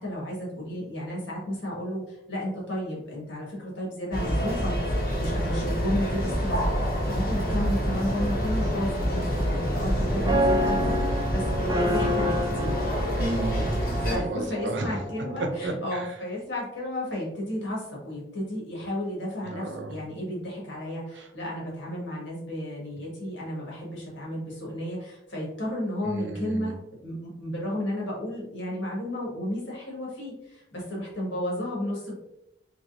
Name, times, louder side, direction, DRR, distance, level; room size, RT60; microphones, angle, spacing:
voice 1, 0.0-12.8 14.1-26.7 27.0-32.1, left 1 dB, 80° left, -3 dB, 1.5 m, -33 dB
sound 1, 4.1-14.2, equal, 50° left, 1.0 m, -27 dB
sound 2, 8.6-15.6, equal, 20° right, 0.4 m, -30 dB
voice 2, 13.1-15.0 15.4-16.1 19.5-20.0 21.2-21.3 26.0-26.7, right 2 dB, 75° right, 4 dB, 0.6 m, -33 dB
3.6 x 3.2 x 2.5 m, 0.85 s
head